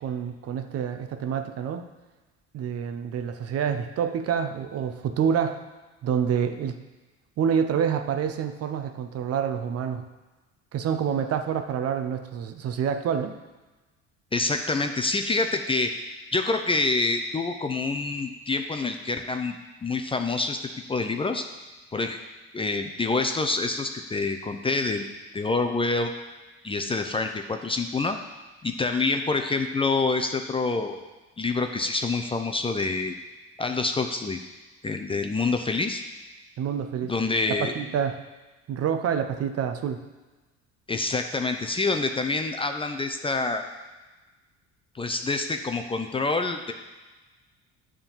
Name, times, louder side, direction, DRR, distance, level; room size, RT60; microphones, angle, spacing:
voice 1, 0.0-1.9 2.5-5.6 6.0-6.8 7.4-10.0 10.7-13.4 36.6-37.1 37.5-38.2 38.7-40.0, right 7 dB, 50° right, 8 dB, 0.7 m, -27 dB
voice 2, 14.3-15.9 16.3-19.6 19.8-21.5 21.9-22.2 22.5-25.1 25.3-26.1 26.6-28.2 28.6-31.0 31.4-33.1 33.6-34.4 34.8-36.0 37.1-37.7 40.9-43.6 44.9-46.7, left 3 dB, 15° left, 6 dB, 0.5 m, -26 dB
9.5 x 3.8 x 7.1 m, 1.2 s
cardioid pair, 120°, 31 cm